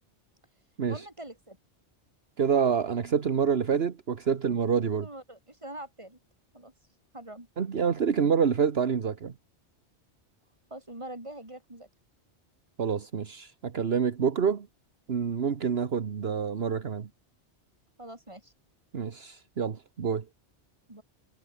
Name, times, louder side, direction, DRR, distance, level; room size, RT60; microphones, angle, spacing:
voice 1, 0.9-1.6 4.8-6.2 6.5-6.7 7.1-7.5 10.7-11.9 18.0-18.5 20.9-21.0, right 1 dB, 25° right, 4.3 m, -43 dB
voice 2, 2.4-5.1 7.6-9.3 12.8-14.7 15.1-17.1 18.9-20.2, right 6 dB, 60° right, 1.4 m, -27 dB
omnidirectional pair, 1.2 m